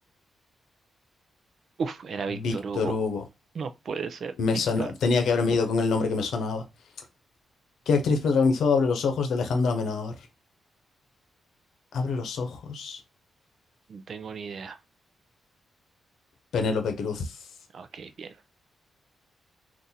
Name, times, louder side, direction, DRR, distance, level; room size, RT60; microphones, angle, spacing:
voice 1, 1.8-3.0 3.5-4.3 4.8-4.9 13.9-14.8 17.7-18.4, right 5 dB, 60° right, 0.4 m, -34 dB
voice 2, 2.3-3.2 4.4-6.6 7.9-10.1 11.9-13.0 16.5-17.3, left 4 dB, 85° left, 0.8 m, -25 dB
2.8 x 2.5 x 3.8 m
cardioid pair, 95°, 0 cm